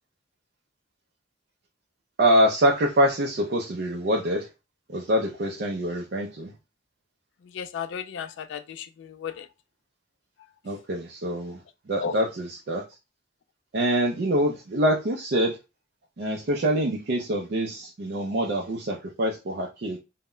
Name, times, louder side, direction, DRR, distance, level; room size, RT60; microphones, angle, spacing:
voice 1, 2.2-4.5 4.9-6.5 10.6-11.6 11.9-12.8 13.7-15.6 16.2-20.0, equal, 55° right, 0.4 m, -25 dB
voice 2, 7.5-9.5 12.0-12.1, left 7 dB, 70° left, 0.3 m, -34 dB
2.1 x 2.1 x 3.7 m
head